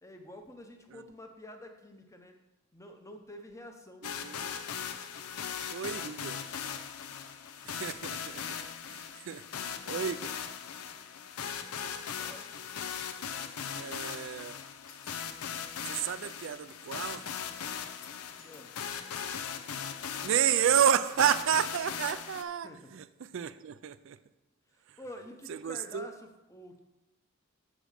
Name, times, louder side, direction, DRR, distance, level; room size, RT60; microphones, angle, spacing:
voice 1, 0.0-2.4 2.7-4.1 12.2-12.5 18.4-18.8 22.6-23.0 23.3-23.4 25.0-26.8, left 1 dB, 15° left, 5 dB, 0.7 m, -48 dB
sound 1, 4.0-22.4, left 7 dB, 90° left, 0.6 m, -39 dB
voice 2, 4.0-4.6 5.7-6.4 7.6-8.4 8.9-9.4 9.9-10.3 13.7-14.6 15.8-17.2 20.2-24.2 25.5-26.1, right 8 dB, 60° right, 15 dB, 0.4 m, -30 dB
sound 2, 14.9-15.4 18.0-18.9 21.3-21.8, left 5 dB, 40° left, 1.2 m, -56 dB
7.5 x 5.0 x 6.5 m, 1.0 s
head